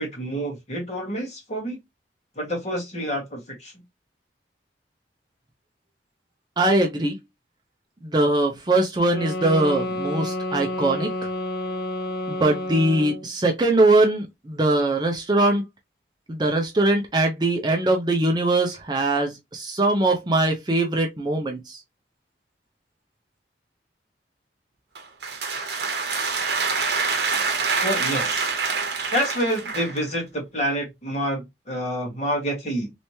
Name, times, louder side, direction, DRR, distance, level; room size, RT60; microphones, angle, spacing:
voice 1, 0.0-1.8 2.3-3.7 27.8-28.5 29.1-32.9, equal, 40° left, 1.6 m, -28 dB
voice 2, 6.6-7.2 8.0-11.3 12.3-15.6 16.3-21.8, right 2 dB, 25° right, 0.5 m, -21 dB
sound 1, 9.1-13.3, left 1 dB, 65° left, 1.4 m, -30 dB
sound 2, 24.9-30.1, right 4 dB, 70° right, 1.0 m, -26 dB
3.2 x 3.1 x 2.7 m
head